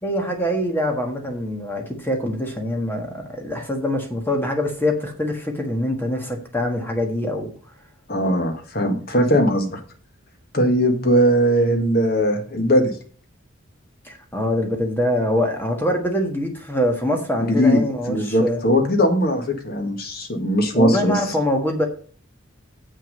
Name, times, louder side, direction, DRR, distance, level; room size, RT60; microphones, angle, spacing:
voice 1, 0.0-7.5 14.0-18.6 20.7-21.8, left 1 dB, 10° left, 2 dB, 1.5 m, -24 dB
voice 2, 8.1-9.8 10.5-12.9 17.4-17.8 18.1-21.3, equal, 50° left, 4 dB, 1.8 m, -19 dB
7.6 x 6.4 x 5.3 m, 0.42 s
head